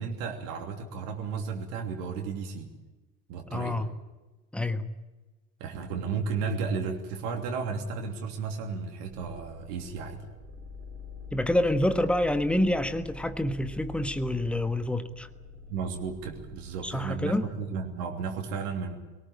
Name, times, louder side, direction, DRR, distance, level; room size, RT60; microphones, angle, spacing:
voice 1, 0.0-2.7 3.3-3.8 5.6-10.2 15.7-18.9, right 5 dB, 55° right, 3.1 m, -33 dB
voice 2, 3.5-3.9 4.5-4.9 11.3-15.3 16.8-17.5, left 1 dB, ahead, 1.3 m, -27 dB
sound 1, 9.1-17.8, left 2 dB, 30° right, 5.3 m, -46 dB
24.0 x 18.0 x 8.8 m
figure-of-eight pair, 75°, 46 cm